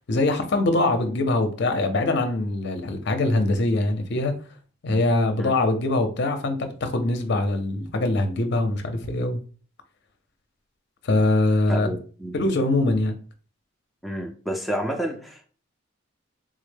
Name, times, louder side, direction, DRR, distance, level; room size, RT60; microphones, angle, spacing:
voice 1, 0.1-4.3 4.8-9.4 11.0-11.9 12.3-13.1, left 2 dB, 55° left, 7 dB, 0.5 m, -23 dB
voice 2, 11.7-12.3 14.0-15.5, equal, ahead, 3 dB, 0.4 m, -30 dB
3.6 x 2.1 x 3.2 m, 0.40 s
head